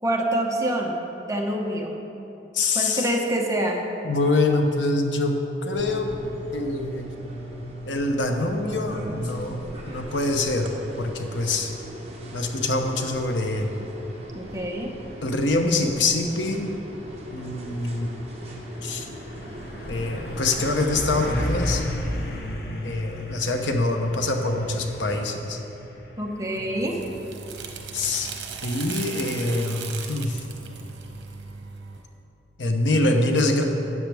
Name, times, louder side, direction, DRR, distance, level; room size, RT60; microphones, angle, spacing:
voice 1, 0.0-1.9 2.7-3.8 14.3-14.9 26.2-27.0, right 1 dB, 20° right, 0 dB, 0.9 m, -26 dB
voice 2, 2.5-3.1 4.0-6.2 6.5-7.1 7.8-11.7 12.3-13.7 15.2-16.7 17.3-18.2 18.8-19.1 19.9-21.8 22.8-25.6 27.9-28.3 28.6-30.4 32.6-33.6, left 2 dB, 90° left, 4 dB, 0.9 m, -25 dB
sound 1, 5.7-21.7, equal, 35° right, 1.3 m, -39 dB
Truck, 16.9-31.1, left 1 dB, 60° left, 0.9 m, -35 dB
sound 2, 26.6-32.0, right 6 dB, 80° right, 0.9 m, -37 dB
12.5 x 8.7 x 3.5 m, 3.0 s
head